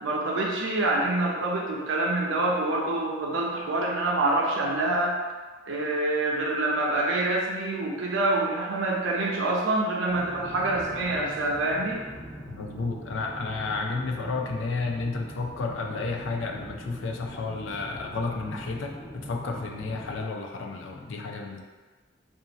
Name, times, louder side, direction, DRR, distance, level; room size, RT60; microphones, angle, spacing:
voice 1, 0.0-5.2 5.7-12.0, right 2 dB, 75° right, -2 dB, 0.7 m, -26 dB
sound 1, 10.1-20.2, right 1 dB, 20° left, 1.0 m, -42 dB
voice 2, 12.5-21.6, left 3 dB, 70° left, 2 dB, 0.4 m, -32 dB
2.7 x 2.5 x 3.9 m, 1.4 s
head